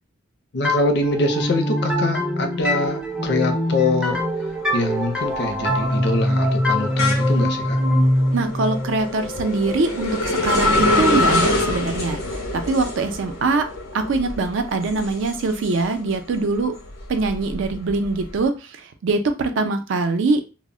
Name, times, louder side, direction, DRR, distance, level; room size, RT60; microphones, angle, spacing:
voice 1, 0.5-4.2 4.7-7.8, left 2 dB, 55° left, 5 dB, 0.5 m, -24 dB
sound 1, 0.6-10.2, equal, 5° right, 0.4 m, -23 dB
sound 2, 4.1-4.5 4.9-16.1 16.5-18.2, left 2 dB, 90° left, 0.8 m, -25 dB
voice 2, 8.3-13.7 13.9-16.7 17.1-20.5, right 3 dB, 65° right, 8 dB, 0.4 m, -23 dB
2.0 x 2.0 x 3.6 m, 0.32 s
head